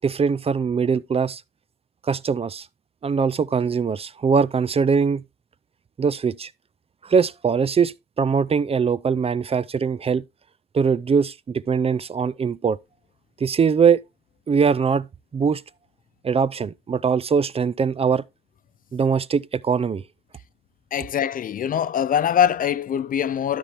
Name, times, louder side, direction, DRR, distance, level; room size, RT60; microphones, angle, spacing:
voice 1, 0.0-1.4 2.1-2.7 3.0-5.2 6.0-6.5 7.0-10.2 10.7-12.8 13.4-14.0 14.5-15.1 15.3-15.6 16.2-18.2 18.9-20.0, right 6 dB, 30° right, 0.4 m, -21 dB
voice 2, 20.9-23.6, left 9 dB, 45° left, 0.4 m, -23 dB
12.5 x 4.3 x 3.4 m
cardioid pair, 90°, 20 cm